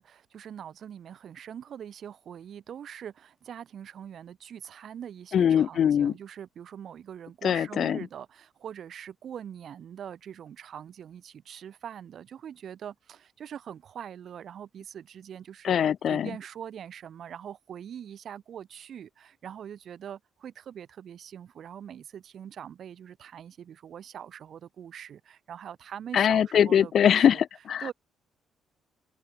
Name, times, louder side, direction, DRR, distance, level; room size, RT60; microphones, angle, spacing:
voice 1, 0.0-15.7 16.1-27.4 27.8-27.9, right 9 dB, 60° right, 6.6 m, -43 dB
voice 2, 5.3-6.1 7.4-8.0 15.6-16.3 26.1-27.9, left 9 dB, 60° left, 0.9 m, -22 dB
open air
cardioid pair, 90°, 0 cm